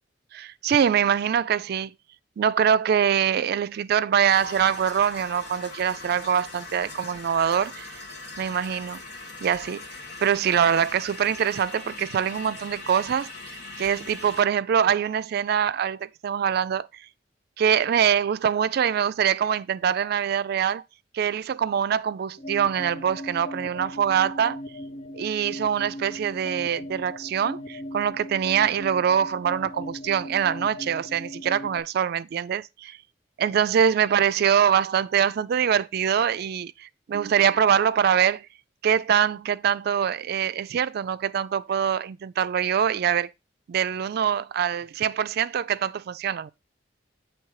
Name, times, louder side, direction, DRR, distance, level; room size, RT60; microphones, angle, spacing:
voice 1, 0.3-1.9 2.4-7.9 8.4-9.0 9.4-9.8 10.2-13.3 13.8-16.9 17.6-20.8 21.1-24.6 25.1-33.0 33.4-38.5 38.8-43.3 43.7-46.5, right 8 dB, 60° right, 0.3 m, -24 dB
sound 1, 4.3-14.4, left 2 dB, 60° left, 1.7 m, -41 dB
sound 2, 22.4-31.8, left 1 dB, 40° left, 0.6 m, -38 dB
8.6 x 3.2 x 4.6 m
head